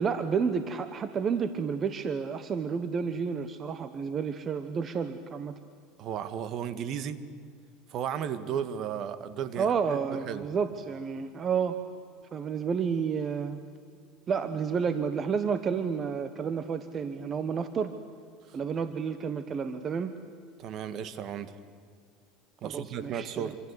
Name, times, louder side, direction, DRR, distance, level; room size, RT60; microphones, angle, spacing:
voice 1, 0.0-5.5 9.6-11.8 12.3-13.6 14.3-17.9 18.5-20.1 22.6-23.5, right 6 dB, 30° right, 10 dB, 1.3 m, -30 dB
voice 2, 6.0-7.2 7.9-10.5 18.5-18.6 20.6-21.6 22.6-23.6, right 8 dB, 45° right, 12 dB, 1.8 m, -35 dB
27.0 x 26.5 x 8.3 m, 2.2 s
supercardioid pair, 130°, 0 cm